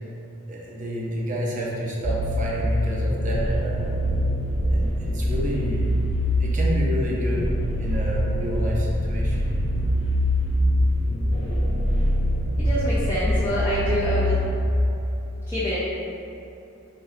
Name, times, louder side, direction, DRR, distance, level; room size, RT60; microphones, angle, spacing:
voice 1, 0.5-4.0 4.7-5.9 6.4-7.5 7.8-9.6, equal, 40° right, -4 dB, 0.6 m, -29 dB
sound 1, 2.0-14.6, equal, 65° left, 0.9 m, -24 dB
voice 2, 12.6-14.4 15.5-15.8, equal, 15° left, -12 dB, 0.5 m, -26 dB
4.4 x 2.2 x 3.6 m, 2.7 s
head